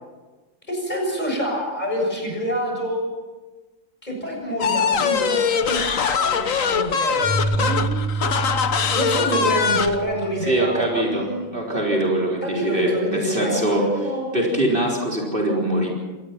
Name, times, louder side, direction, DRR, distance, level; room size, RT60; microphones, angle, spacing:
voice 1, 0.7-3.0 4.0-8.3 8.9-11.5 12.4-14.3, equal, 30° left, 0 dB, 7.3 m, -27 dB
sound 1, 4.6-10.0, left 6 dB, 70° left, 1.5 m, -22 dB
Keyboard (musical), 7.2-10.7, right 3 dB, 10° right, 7.7 m, -28 dB
voice 2, 10.4-13.9 14.3-15.9, right 1 dB, 40° right, -2 dB, 4.3 m, -23 dB
25.5 x 19.0 x 6.0 m, 1.2 s
omnidirectional pair, 1.5 m